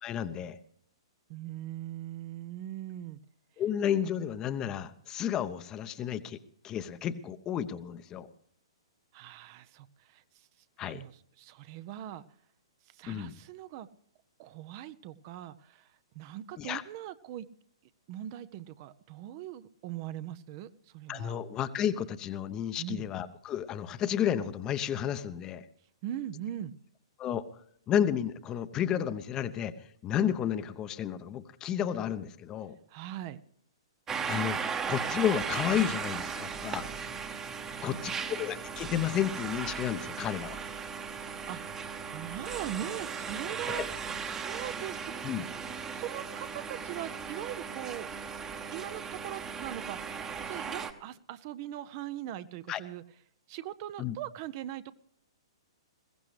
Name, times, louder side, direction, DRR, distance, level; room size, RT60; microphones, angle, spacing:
voice 1, 0.0-0.6 3.6-6.4 6.6-8.3 10.8-11.0 13.1-13.4 16.6-16.8 21.1-25.6 27.2-27.5 27.9-29.7 30.0-32.8 34.3-34.6 34.9-36.9 37.8-40.6 43.7-43.9 45.2-45.4 52.7-52.8 54.0-54.1, left 9 dB, 25° left, 13 dB, 0.8 m, -32 dB
voice 2, 1.3-3.2 9.1-10.5 10.8-12.2 12.9-13.9 14.4-17.5 18.1-21.4 22.8-23.1 26.0-26.7 32.9-33.4 37.6-38.4 41.1-41.8 42.1-43.9 44.1-45.3 45.9-48.1 48.7-50.1 50.4-53.0 53.5-54.9, right 12 dB, 35° right, 14 dB, 0.6 m, -41 dB
sound 1, 34.1-50.9, right 6 dB, 15° right, 1.1 m, -37 dB
21.0 x 16.0 x 3.2 m, 0.63 s
figure-of-eight pair, 115°, 3 cm